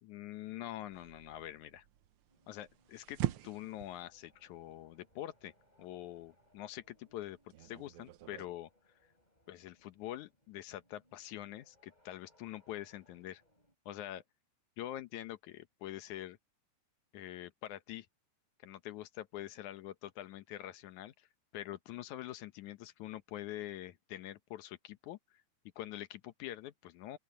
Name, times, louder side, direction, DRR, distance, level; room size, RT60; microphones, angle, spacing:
voice 1, 0.0-1.9 2.5-5.5 5.8-8.7 9.5-13.4 13.9-14.2 14.8-16.4 17.1-18.1 18.6-21.3 21.5-25.2 25.8-27.2, left 13 dB, 75° left, 2.3 m, -45 dB
sound 1, 0.9-8.5, right 14 dB, 85° right, 1.2 m, -44 dB
sound 2, 2.3-13.8, left 1 dB, 10° left, 8.0 m, -72 dB
open air
omnidirectional pair, 3.5 m